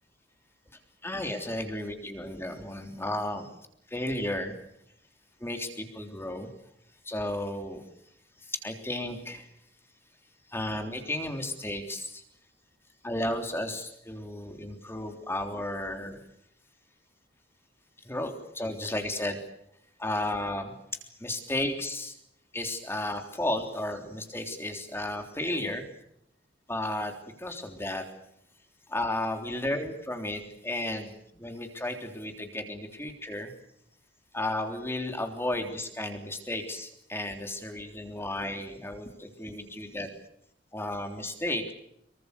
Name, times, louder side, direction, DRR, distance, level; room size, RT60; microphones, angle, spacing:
voice 1, 1.0-3.5 3.9-4.5 5.4-6.5 7.1-7.8 8.4-9.5 10.5-12.2 13.0-16.2 18.0-19.4 20.0-20.7 21.2-22.2 22.5-25.9 26.7-27.1 27.4-28.0 28.9-33.5 34.3-40.1 40.7-41.7, left 1 dB, 15° left, 5 dB, 3.5 m, -33 dB
25.5 x 24.0 x 6.7 m, 0.75 s
head